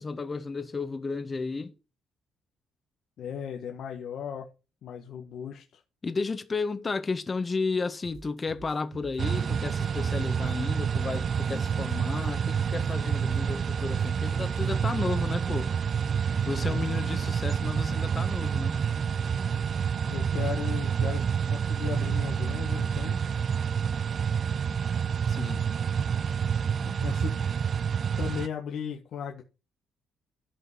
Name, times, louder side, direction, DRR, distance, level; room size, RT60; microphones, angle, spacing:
voice 1, 0.0-1.7 6.0-15.7 16.4-18.8 25.3-25.7, left 4 dB, 30° left, 1.5 m, -33 dB
voice 2, 3.2-4.5 4.8-5.8 16.6-16.8 20.1-23.2 26.8-27.4 28.2-29.4, left 8 dB, 70° left, 1.6 m, -36 dB
sound 1, 8.0-10.2 10.5-11.9 12.2-15.2, right 4 dB, 70° right, 6.3 m, -49 dB
sound 2, 9.2-28.5, right 7 dB, 50° right, 0.5 m, -28 dB
13.0 x 5.5 x 5.7 m
cardioid pair, 90°, 0 cm